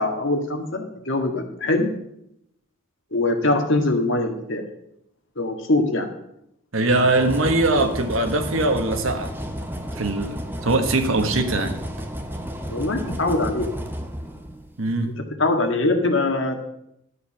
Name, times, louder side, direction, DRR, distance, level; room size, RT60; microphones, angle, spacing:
voice 1, 0.0-1.9 3.1-4.6 5.4-6.1 12.7-13.7 15.4-16.5, left 2 dB, 65° left, 4 dB, 1.8 m, -22 dB
voice 2, 6.7-9.3 10.0-11.9 14.8-15.1, right 2 dB, 80° right, 7 dB, 1.5 m, -22 dB
sound 1, 6.9-14.8, equal, 10° right, 0.9 m, -32 dB
12.0 x 8.3 x 5.9 m, 0.79 s
head